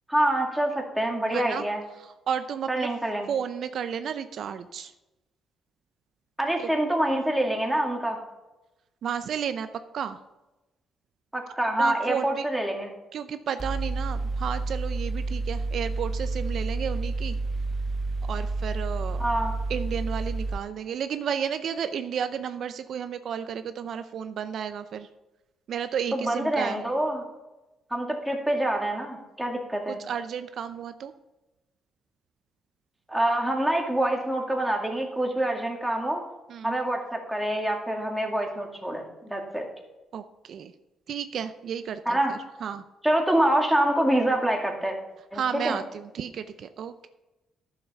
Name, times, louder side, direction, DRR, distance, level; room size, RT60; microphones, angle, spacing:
voice 1, 0.1-1.8 2.7-3.3 6.4-8.2 11.3-12.9 19.2-19.5 26.1-27.2 27.9-30.0 33.1-36.2 36.6-39.7 42.1-42.3 43.0-44.9 45.3-45.8, right 1 dB, 5° right, 1 dB, 2.2 m, -26 dB
voice 2, 1.3-1.6 2.3-2.9 3.3-4.9 6.6-6.7 9.0-9.7 9.9-10.2 11.8-12.4 13.1-17.4 18.3-19.2 19.7-25.1 25.7-26.8 29.9-31.1 36.5-36.8 40.1-40.7 41.1-42.8 45.3-47.1, right 8 dB, 65° right, 10 dB, 0.5 m, -32 dB
Mechanical fan, 13.6-20.6, right 3 dB, 25° right, 0.6 m, -30 dB
10.5 x 7.2 x 5.6 m, 1.0 s
cardioid pair, 90°, 0 cm